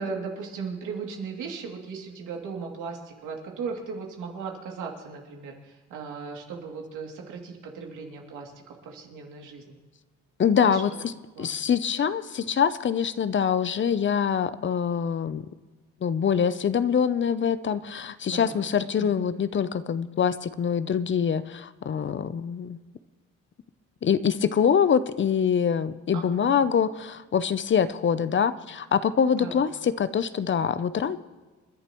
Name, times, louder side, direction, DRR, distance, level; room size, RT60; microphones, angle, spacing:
voice 1, 0.0-5.5 5.9-8.5 8.8-9.8 10.6-10.8 11.4-11.6 18.3-18.6 19.0-19.2 26.1-26.5 29.4-29.7, right 5 dB, 85° right, 0 dB, 2.8 m, -37 dB
voice 2, 10.4-11.1 11.4-15.5 16.0-22.8 24.0-31.2, left 7 dB, 40° left, 14 dB, 0.7 m, -24 dB
28.5 x 11.0 x 3.1 m, 1.3 s
cardioid pair, 90°, 30 cm